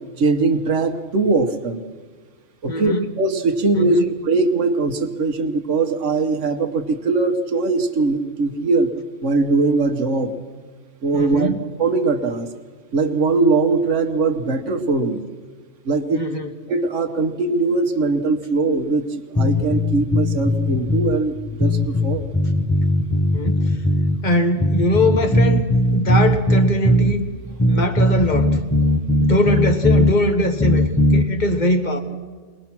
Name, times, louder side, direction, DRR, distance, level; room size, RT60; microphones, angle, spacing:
voice 1, 0.2-1.8 2.6-8.9 9.2-10.3 11.0-11.5 11.8-12.5 12.9-15.2 15.8-16.2 16.7-22.2, right 3 dB, 65° right, 7 dB, 1.4 m, -20 dB
voice 2, 2.7-3.1 3.7-4.1 11.1-11.6 16.1-16.5 23.3-23.8 24.2-27.3 27.7-28.5 29.2-32.0, left 1 dB, 35° left, 7 dB, 1.4 m, -21 dB
sound 1, 19.3-21.2 21.6-24.2 24.6-27.2 27.6-30.2 30.6-31.3, equal, 15° left, 0.8 m, -18 dB
22.5 x 19.5 x 6.0 m, 1.5 s
omnidirectional pair, 1.4 m